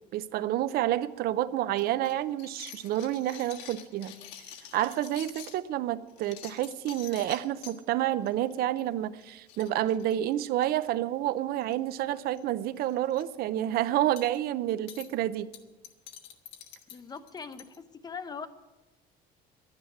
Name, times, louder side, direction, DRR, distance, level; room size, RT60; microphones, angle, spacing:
voice 1, 0.1-4.1 4.7-15.5, right 13 dB, 60° right, 15 dB, 0.6 m, -29 dB
sound 1, 1.8-5.6 6.1-7.8 8.3-8.5 8.8-8.9 9.2-9.3 9.5-10.9 11.6-12.0 12.3-12.4 12.8-13.2 14.2-14.4 14.9-15.1 15.5-17.8, left 10 dB, 85° left, 1.5 m, -47 dB
voice 2, 16.9-18.5, left 5 dB, 25° left, 11 dB, 0.8 m, -41 dB
12.0 x 9.7 x 8.5 m, 1.1 s
cardioid pair, 150°, 18 cm